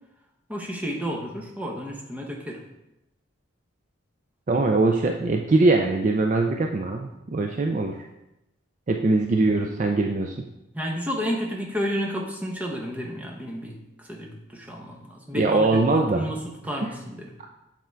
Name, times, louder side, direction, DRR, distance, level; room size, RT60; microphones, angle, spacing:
voice 1, 0.5-2.6 10.7-17.3, equal, 5° right, -1 dB, 0.9 m, -31 dB
voice 2, 4.5-8.0 8.9-10.3 15.3-16.2 17.4-17.5, right 3 dB, 35° right, 3 dB, 0.4 m, -22 dB
7.9 x 3.6 x 4.5 m, 0.90 s
head